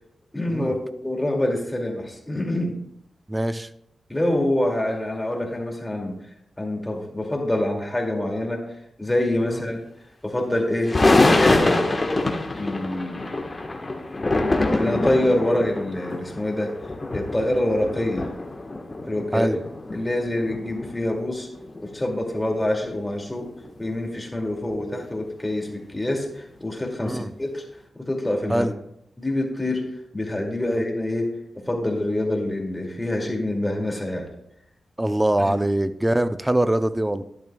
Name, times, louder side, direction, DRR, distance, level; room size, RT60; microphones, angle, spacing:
voice 1, 0.3-2.8 4.1-6.2 6.6-9.8 10.2-11.0 11.3-11.8 12.6-13.4 14.2-16.7 17.1-18.3 19.1-19.5 19.9-21.5 21.8-23.5 23.8-27.6 28.0-28.7 29.2-34.3 35.4-35.5, left 1 dB, 15° left, 1 dB, 2.3 m, -26 dB
voice 2, 3.3-3.7 9.5-9.6 19.3-19.6 27.0-27.3 28.5-28.7 30.7-30.8 35.0-37.2, right 1 dB, 15° right, 12 dB, 0.6 m, -23 dB
sound 1, 10.8-22.3 22.5-22.6 22.9-23.0 23.3-24.0 24.6-24.9 25.2-25.5 25.9-26.2 26.8-26.9, left 2 dB, 35° left, 1.3 m, -25 dB
12.0 x 10.5 x 2.3 m, 0.75 s
cardioid pair, 65°, 0 cm